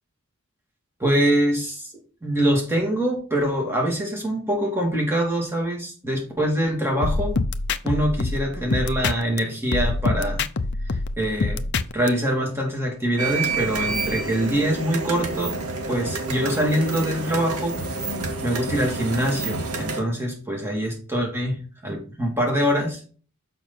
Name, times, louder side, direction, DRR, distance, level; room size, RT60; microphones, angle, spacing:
voice 1, 1.0-1.9 2.2-7.4 7.8-10.4 10.8-11.6 11.9-17.8 18.4-23.0, right 1 dB, 10° right, -1 dB, 2.8 m, -24 dB
sound 1, 7.0-9.4 9.7-12.1, left 3 dB, 50° left, 0.6 m, -25 dB
sound 2, 13.2-20.0, right 3 dB, 80° right, 2.3 m, -29 dB
7.0 x 5.8 x 4.4 m, 0.38 s
head